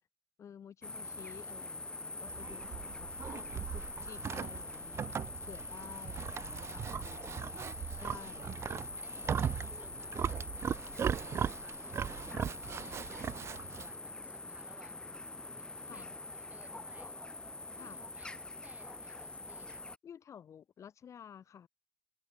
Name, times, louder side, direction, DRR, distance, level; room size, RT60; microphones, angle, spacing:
voice 1, 0.4-8.5 12.2-12.4 15.8-16.2 17.8-18.0 20.0-21.7, left 8 dB, 45° left, 4.2 m, -53 dB
sound 1, 0.8-20.0, left 2 dB, 15° left, 0.4 m, -45 dB
Livestock farm animals working animals, 2.3-13.9, right 8 dB, 40° right, 0.6 m, -38 dB
voice 2, 7.9-8.3 8.7-14.9 15.6-17.2 17.7-19.8, right 4 dB, 25° right, 5.6 m, -60 dB
open air
supercardioid pair, 80°, 7 cm